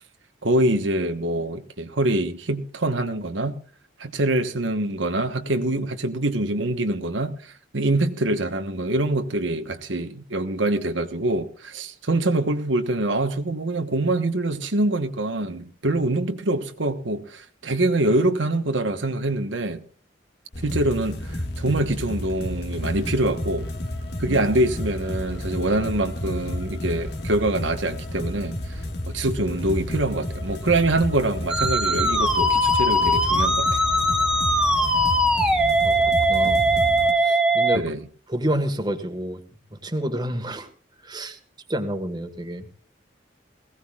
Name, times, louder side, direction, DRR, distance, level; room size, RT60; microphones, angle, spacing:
voice 1, 0.4-3.6 4.0-19.8 20.6-23.7 24.2-28.8 29.0-33.8 37.7-38.0, right 2 dB, 90° right, 1.3 m, -24 dB
sound 1, 20.5-37.1, left 1 dB, 60° left, 1.9 m, -31 dB
Musical instrument, 31.5-37.8, equal, 5° right, 1.6 m, -20 dB
voice 2, 35.8-36.6 37.1-37.8 38.3-39.4 39.7-40.7 41.0-41.4 41.7-42.7, right 1 dB, 25° right, 1.6 m, -29 dB
20.5 x 16.5 x 2.4 m
head